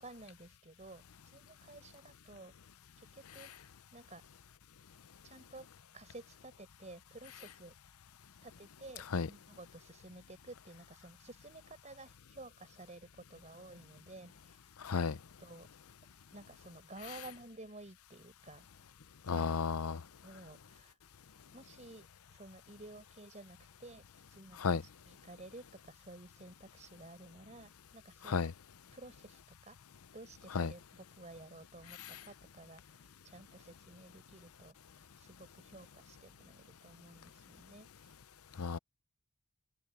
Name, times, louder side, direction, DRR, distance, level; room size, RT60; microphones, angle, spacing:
voice 1, 0.0-2.5 3.0-3.5 3.9-4.2 5.2-5.7 5.9-7.7 8.4-14.7 15.1-15.7 16.3-18.7 20.2-21.0 21.5-24.0 24.3-28.5 28.9-29.8 30.1-38.2, right 2 dB, 35° right, 5.5 m, -53 dB
voice 2, 14.8-15.2 19.3-20.0 24.6-24.8 28.3-28.5 30.5-30.7 38.6-38.8, left 5 dB, 80° left, 0.7 m, -32 dB
head